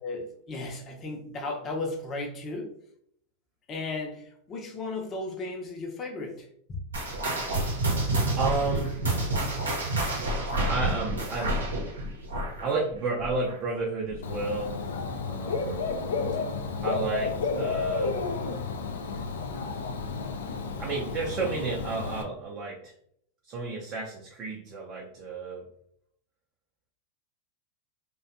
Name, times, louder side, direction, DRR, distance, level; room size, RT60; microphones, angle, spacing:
voice 1, 0.0-2.7 3.7-6.8, left 3 dB, 35° left, 2 dB, 0.6 m, -35 dB
sound 1, 6.9-13.8 14.1-14.4 15.0-15.1 15.9-16.0, right 1 dB, 90° right, 0.7 m, -29 dB
voice 2, 8.1-9.0 10.7-11.7 12.6-14.7 15.3-15.9 16.8-18.2 20.8-22.9 23.5-25.7, right 3 dB, 40° right, -2 dB, 0.5 m, -32 dB
Dog / Bird, 14.2-22.2, left 4 dB, 80° left, 0.3 m, -31 dB
2.5 x 2.2 x 2.4 m, 0.68 s
hypercardioid pair, 100°, 0 cm